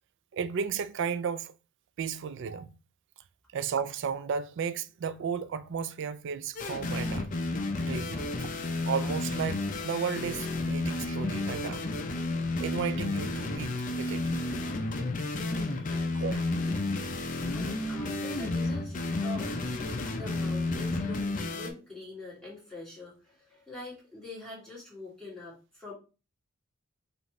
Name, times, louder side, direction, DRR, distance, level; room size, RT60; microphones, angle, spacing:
voice 1, 0.3-1.5 2.0-2.7 3.5-7.4 7.8-8.2 8.8-11.9 12.6-14.3 15.5-16.4, right 6 dB, 60° right, 0.3 m, -34 dB
sound 1, 6.6-21.7, left 2 dB, 40° left, 0.6 m, -31 dB
voice 2, 15.7-16.9 17.2-25.9, left 2 dB, 5° left, 2.0 m, -45 dB
5.0 x 2.6 x 3.1 m
head